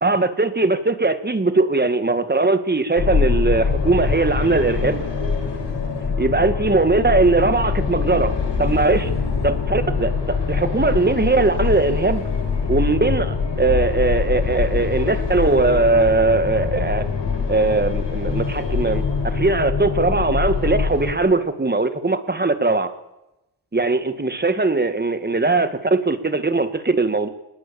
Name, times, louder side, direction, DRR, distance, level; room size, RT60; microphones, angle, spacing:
voice 1, 0.0-5.0 6.2-8.3 8.6-9.1 9.4-12.2 12.7-17.0 17.5-22.9 23.7-27.3, right 3 dB, 25° right, 10 dB, 2.1 m, -20 dB
sound 1, 3.0-21.1, left 5 dB, 75° left, 5.7 m, -23 dB
26.5 x 20.0 x 7.1 m, 0.92 s
wide cardioid pair, 110°, 42 cm